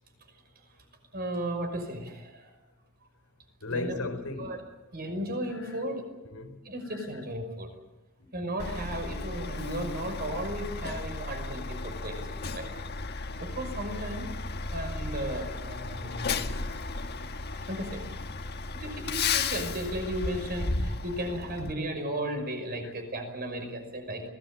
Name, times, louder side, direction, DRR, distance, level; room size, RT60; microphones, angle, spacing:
voice 1, 1.1-2.5 3.7-4.0 4.4-4.6 4.9-6.1 6.6-7.7 8.3-12.3 12.5-12.7 13.4-14.3 14.7-16.3 17.7-18.1 18.7-24.3, right 1 dB, 45° right, 5.8 m, -35 dB
voice 2, 3.6-4.5 5.5-5.7 6.2-6.6 9.5-9.6 11.3-11.4 12.9-13.3 16.4-16.8 22.8-22.9, left 2 dB, 90° left, 4.1 m, -37 dB
Truck, 8.6-21.7, left 4 dB, 50° left, 1.5 m, -34 dB
25.0 x 18.5 x 8.7 m
head